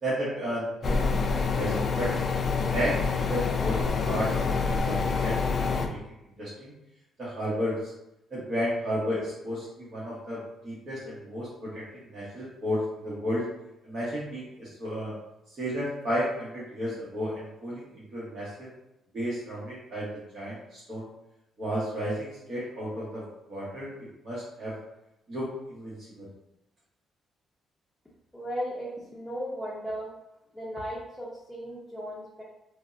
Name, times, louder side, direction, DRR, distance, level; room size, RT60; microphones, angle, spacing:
voice 1, 0.0-2.1 2.7-4.4 4.7-6.0 6.4-6.7 7.2-7.9 8.3-11.8 12.1-13.4 13.8-15.1 15.6-18.7 19.1-21.1 21.6-23.9 24.2-24.8 25.3-26.3, equal, 45° right, -8 dB, 1.0 m, -33 dB
sound 1, 0.8-5.9, left 4 dB, 45° left, 0.3 m, -27 dB
voice 2, 28.3-30.1 30.5-32.4, equal, 10° left, -6 dB, 0.6 m, -36 dB
3.4 x 2.1 x 2.5 m, 0.87 s
cardioid pair, 90°, 0 cm